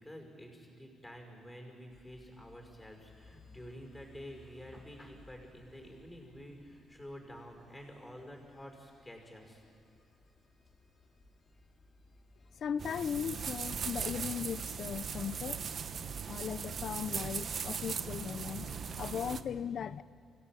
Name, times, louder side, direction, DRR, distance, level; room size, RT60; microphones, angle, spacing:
voice 1, 0.0-9.6, equal, 10° left, 5.7 m, -49 dB
sound 1, 1.9-16.0, left 2 dB, 35° left, 3.0 m, -62 dB
voice 2, 12.6-15.7 16.0-20.0, left 8 dB, 60° left, 0.6 m, -38 dB
sound 2, 12.8-19.4, right 6 dB, 50° right, 1.0 m, -39 dB
26.0 x 16.5 x 9.1 m
cardioid pair, 90°, 0 cm